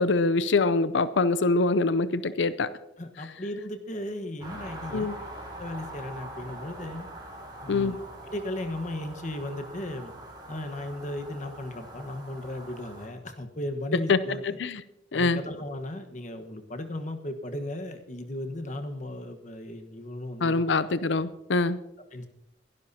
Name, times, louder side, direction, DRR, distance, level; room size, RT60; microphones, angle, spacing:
voice 1, 0.0-2.7 4.9-5.1 7.7-8.0 14.1-14.2 14.6-14.8 15.1-15.4 20.4-21.8, left 3 dB, 85° left, 14 dB, 0.6 m, -24 dB
voice 2, 3.0-5.1 5.6-7.1 7.6-8.0 8.3-10.1 10.5-14.6 15.1-20.6 22.1-22.3, left 1 dB, 45° left, 6 dB, 1.3 m, -36 dB
sound 1, 4.4-13.1, right 1 dB, 25° right, 4.6 m, -43 dB
23.0 x 12.0 x 2.8 m, 0.87 s
head